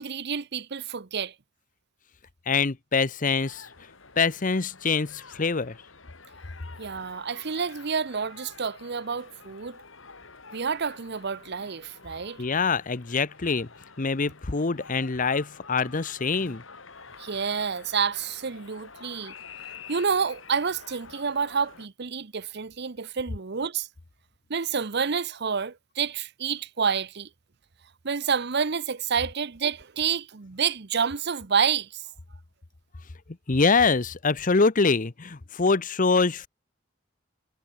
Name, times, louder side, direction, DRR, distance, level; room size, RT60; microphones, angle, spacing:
voice 1, 0.0-1.3 6.8-9.8 10.5-12.4 17.2-19.3 19.9-23.9 24.5-27.3 28.0-32.0, right 6 dB, 60° right, 0.9 m, -29 dB
voice 2, 2.5-3.7 4.2-5.8 12.4-13.7 14.0-16.6 33.5-36.5, left 4 dB, 45° left, 0.9 m, -24 dB
sound 1, 3.4-21.9, left 5 dB, 80° left, 4.9 m, -48 dB
head